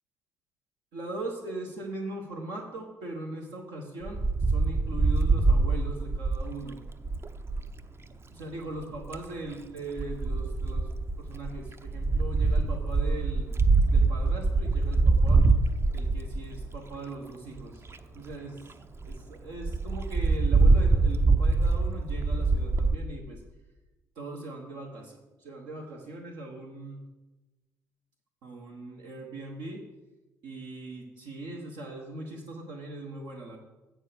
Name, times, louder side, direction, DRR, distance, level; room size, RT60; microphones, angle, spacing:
voice 1, 0.9-6.8 8.3-10.9 11.2-13.6 13.8-15.5 15.9-18.8 19.0-23.4 24.1-27.0 28.4-29.8 30.4-33.6, right 2 dB, 65° right, 0 dB, 1.1 m, -40 dB
Wind, 4.1-7.7 8.8-9.3 10.0-16.9 17.6-17.7 17.9-18.0 18.3-18.4 18.7-18.8 19.0-19.2 19.6-22.9, right 3 dB, 30° right, 0.6 m, -24 dB
8.7 x 4.6 x 6.8 m, 1.1 s
figure-of-eight pair, 45°, 9 cm